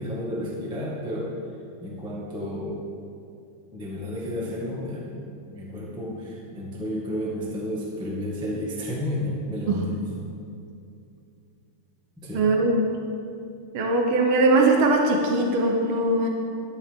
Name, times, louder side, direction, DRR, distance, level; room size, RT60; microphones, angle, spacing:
voice 1, 0.0-1.3 1.8-2.8 3.7-5.2 5.5-9.9 12.2-12.4, left 1 dB, 5° right, -5 dB, 0.9 m, -31 dB
voice 2, 12.3-12.8 13.7-16.3, right 2 dB, 75° right, 1 dB, 1.2 m, -21 dB
12.5 x 11.5 x 3.6 m, 2.6 s
omnidirectional pair, 3.5 m